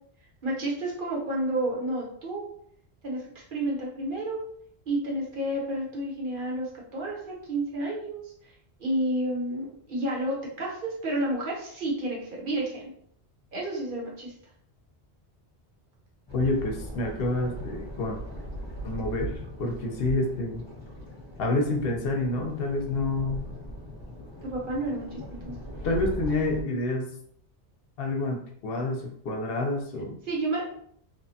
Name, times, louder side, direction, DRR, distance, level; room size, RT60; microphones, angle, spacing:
voice 1, 0.4-2.4 3.0-4.4 4.9-8.5 8.8-12.9 13.5-14.3 24.4-25.5 30.3-30.6, right 1 dB, 55° right, -3 dB, 1.0 m, -30 dB
voice 2, 16.3-18.2 18.8-20.6 21.4-23.5 25.8-27.1 28.0-30.2, left 2 dB, 65° left, 2 dB, 0.8 m, -28 dB
sound 1, 16.3-26.6, equal, 20° left, 1.0 m, -39 dB
3.0 x 2.1 x 2.7 m, 0.65 s
omnidirectional pair, 1.1 m